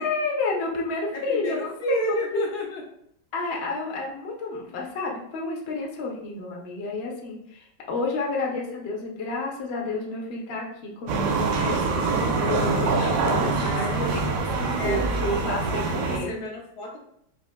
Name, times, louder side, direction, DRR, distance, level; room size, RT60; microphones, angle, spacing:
voice 1, 0.0-2.4 3.3-16.4, left 3 dB, 55° left, -1 dB, 0.7 m, -30 dB
voice 2, 1.1-2.8 3.5-3.6 13.6-14.3 14.8-15.1 16.0-17.0, equal, 70° left, 0 dB, 1.2 m, -31 dB
sound 1, 11.1-16.2, right 4 dB, 80° right, 1.3 m, -25 dB
4.8 x 2.6 x 2.2 m, 0.70 s
omnidirectional pair, 1.9 m